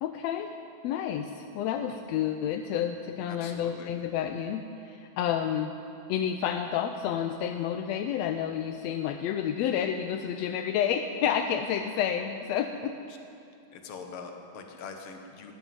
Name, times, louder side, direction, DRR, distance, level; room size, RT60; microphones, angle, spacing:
voice 1, 0.0-0.5 0.8-5.7 6.1-12.9, left 9 dB, 80° left, 6 dB, 1.6 m, -30 dB
voice 2, 3.3-3.9 13.7-15.5, left 5 dB, 55° left, 4 dB, 2.0 m, -43 dB
12.5 x 10.5 x 9.5 m, 2.6 s
omnidirectional pair, 3.5 m